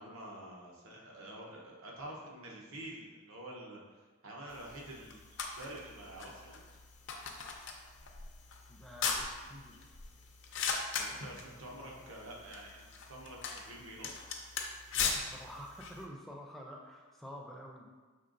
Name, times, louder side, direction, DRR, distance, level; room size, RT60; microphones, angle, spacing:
voice 1, 0.0-5.2 5.6-6.6 10.9-14.1, right 1 dB, 75° right, -2 dB, 0.9 m, -48 dB
sound 1, 4.5-16.1, left 5 dB, 55° left, 0.5 m, -40 dB
voice 2, 8.7-9.8 11.5-12.1 14.9-17.9, equal, ahead, -1 dB, 0.4 m, -49 dB
5.5 x 3.5 x 2.5 m, 1.4 s
head